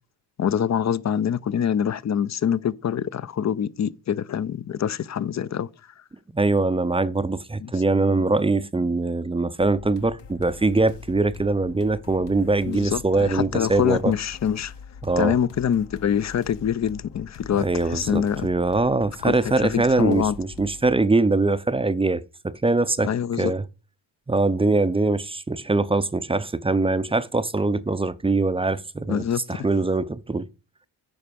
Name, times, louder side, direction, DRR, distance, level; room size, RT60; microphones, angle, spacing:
voice 1, 0.4-5.7 7.6-7.7 12.7-14.7 15.2-18.5 19.2-20.4 23.0-23.5 29.1-29.4, left 8 dB, 35° left, 0.5 m, -25 dB
voice 2, 6.3-14.1 15.0-15.4 17.6-23.1 23.4-23.6 24.3-29.2 29.5-30.5, right 3 dB, 10° right, 0.6 m, -22 dB
sound 1, 9.6-20.9, left 6 dB, 60° left, 1.1 m, -43 dB
9.2 x 5.0 x 5.2 m
cardioid pair, 70°, 47 cm